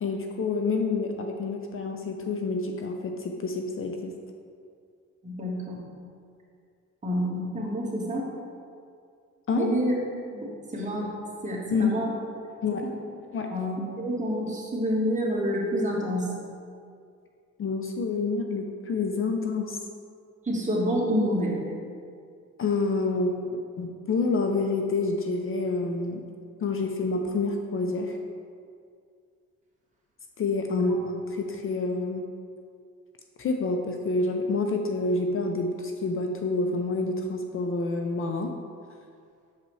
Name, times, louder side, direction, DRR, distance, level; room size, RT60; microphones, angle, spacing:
voice 1, 0.0-4.1 9.5-9.7 11.7-12.0 12.6-12.8 13.3-13.5 17.6-19.8 22.6-23.4 23.8-26.2 26.6-28.2 30.4-32.2 33.4-38.5, left 3 dB, 45° left, 4 dB, 0.5 m, -28 dB
voice 2, 5.2-5.9 7.0-8.2 9.6-9.9 10.3-11.1 11.4-12.1 12.8-12.9 13.5-16.4 20.4-21.6 30.7-31.0, equal, 25° right, -4 dB, 1.5 m, -28 dB
6.6 x 5.4 x 3.2 m, 2.3 s
cardioid pair, 90°, 30 cm